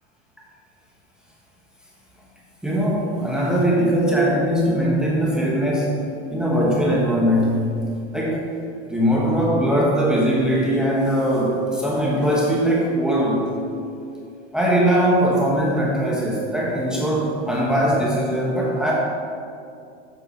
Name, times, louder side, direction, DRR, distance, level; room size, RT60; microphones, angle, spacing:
voice 1, 2.6-6.0 6.3-7.7 8.1-8.5 8.8-13.5 14.5-18.9, equal, ahead, -4 dB, 1.3 m, -20 dB
7.6 x 5.2 x 5.8 m, 2.4 s
supercardioid pair, 115°, 33 cm